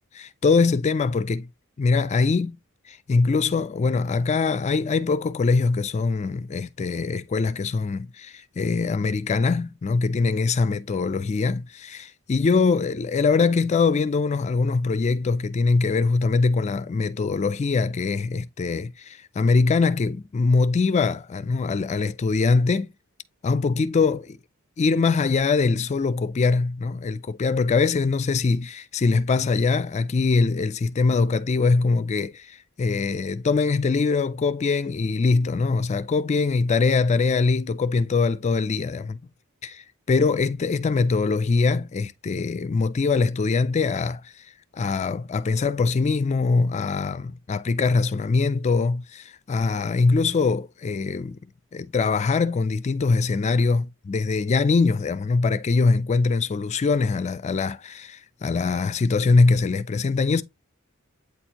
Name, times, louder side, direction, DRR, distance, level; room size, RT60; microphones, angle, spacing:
voice 1, 0.2-1.5 1.8-2.6 2.9-22.9 23.4-24.4 24.8-39.2 39.6-44.5 44.7-51.4 51.7-60.4, left 4 dB, 30° left, 0.3 m, -23 dB
8.4 x 4.3 x 2.8 m
head